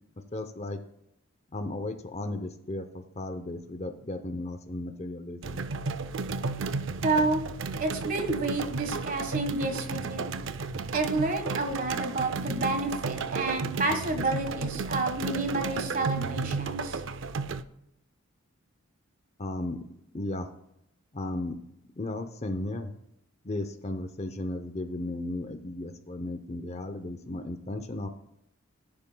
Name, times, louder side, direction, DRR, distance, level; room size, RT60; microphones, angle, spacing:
voice 1, 0.3-0.8 1.5-5.6 19.4-19.8 20.1-20.5 21.1-21.5 22.0-22.9 23.4-28.1, left 2 dB, 30° left, 8 dB, 0.7 m, -35 dB
sound 1, 5.4-17.6, right 4 dB, 60° right, 0.5 m, -33 dB
voice 2, 7.0-7.4 7.8-10.3 10.9-17.0, right 2 dB, 40° right, 6 dB, 1.5 m, -29 dB
18.0 x 8.8 x 2.3 m, 0.79 s
head